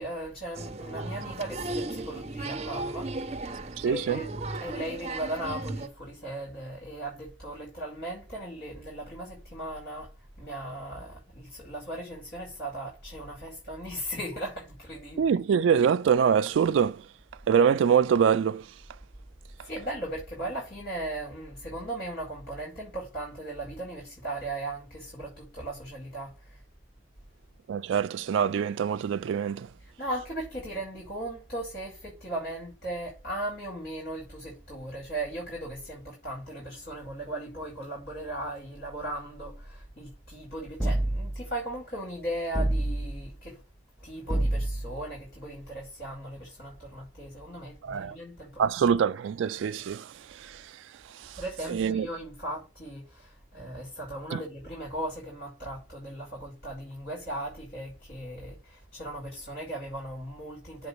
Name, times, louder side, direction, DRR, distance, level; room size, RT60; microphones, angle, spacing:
voice 1, 0.0-3.1 3.8-10.1 10.4-15.4 19.6-26.6 29.8-43.6 44.0-48.9 51.4-60.9, right 1 dB, 55° left, 4.8 m, -37 dB
Applause, 0.5-5.9, right 2 dB, 35° right, 0.8 m, -36 dB
voice 2, 3.8-4.2 15.2-17.0 17.5-18.7 27.7-29.7 47.8-48.2 48.6-50.7 51.1-51.4 51.7-52.1 54.3-54.4, right 7 dB, 90° right, 0.3 m, -25 dB
sound 1, 40.8-41.5 42.5-43.3 44.3-45.0, right 1 dB, 5° left, 0.6 m, -27 dB
7.7 x 4.0 x 6.7 m
head